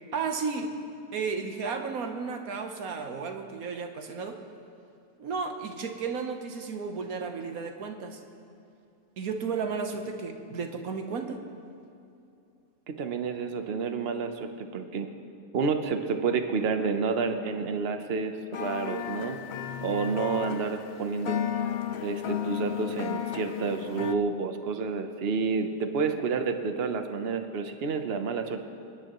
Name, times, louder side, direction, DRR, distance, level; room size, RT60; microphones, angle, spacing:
voice 1, 0.1-0.7 1.1-4.4 5.2-8.2 9.2-11.4, right 5 dB, 65° right, 5 dB, 1.4 m, -33 dB
voice 2, 12.9-15.1 15.5-19.4 19.8-21.4 22.0-28.7, right 5 dB, 45° right, 7 dB, 0.9 m, -29 dB
sound 1, 18.5-24.1, left 9 dB, 70° left, 0.6 m, -33 dB
28.5 x 10.0 x 3.1 m, 2.6 s
omnidirectional pair, 1.7 m